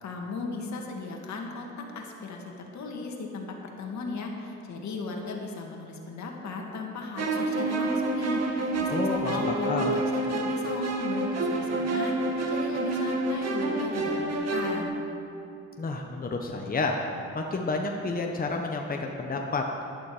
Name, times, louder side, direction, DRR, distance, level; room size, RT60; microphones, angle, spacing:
voice 1, 0.0-8.9 9.3-15.0, left 3 dB, 65° left, 1 dB, 2.2 m, -36 dB
sound 1, 7.2-14.8, right 2 dB, 55° right, 1.8 m, -28 dB
voice 2, 8.9-10.0 15.8-17.0 17.3-19.7, left 3 dB, 30° left, 2 dB, 1.2 m, -30 dB
15.0 x 11.5 x 5.0 m, 2.6 s
cardioid pair, 90°, 30 cm